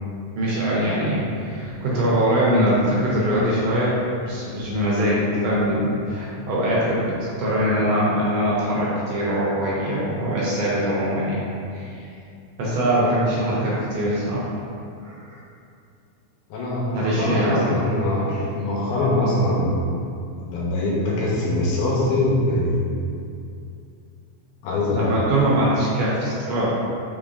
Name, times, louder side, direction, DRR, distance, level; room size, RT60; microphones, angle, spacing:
voice 1, 0.4-4.0 4.3-11.4 11.7-12.0 12.6-14.5 15.0-15.4 16.9-17.7 24.9-26.8, equal, 75° right, -6 dB, 1.6 m, -22 dB
voice 2, 16.5-20.0 20.4-22.9 24.6-25.1 25.7-25.8, left 1 dB, 90° left, -5 dB, 2.3 m, -23 dB
4.9 x 3.6 x 2.5 m, 2.5 s
omnidirectional pair, 3.5 m